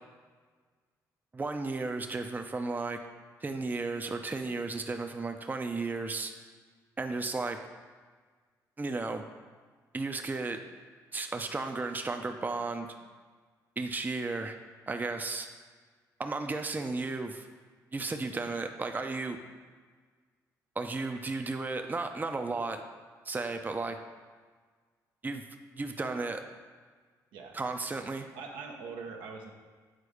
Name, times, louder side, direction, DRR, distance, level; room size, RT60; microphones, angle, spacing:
voice 1, 1.3-3.0 3.4-6.3 7.0-7.6 8.8-9.2 9.9-10.6 11.1-12.9 13.8-14.6 14.9-15.5 16.2-17.5 17.9-19.4 20.8-22.8 23.3-24.0 25.2-25.4 25.7-26.4 27.5-28.3, right 3 dB, 20° right, 5 dB, 0.6 m, -34 dB
voice 2, 28.4-29.5, right 4 dB, 80° right, 2 dB, 0.9 m, -43 dB
6.5 x 4.1 x 5.0 m, 1.5 s
supercardioid pair, 60°, 8 cm